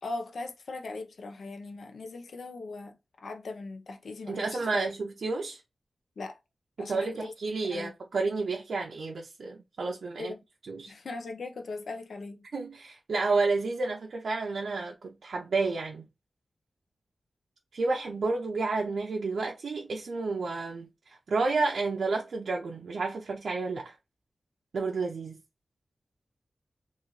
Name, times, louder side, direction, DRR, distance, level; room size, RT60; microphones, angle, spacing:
voice 1, 0.0-4.9 6.2-6.4 6.8-7.3 7.6-7.9 10.2-10.4 10.9-12.5, left 3 dB, 85° left, 0.6 m, -39 dB
voice 2, 4.3-5.6 6.8-10.3 10.7-10.9 12.5-16.1 17.7-23.9 24.7-25.4, right 3 dB, 85° right, 0.6 m, -31 dB
3.0 x 2.4 x 3.8 m
wide cardioid pair, 135°, 0 cm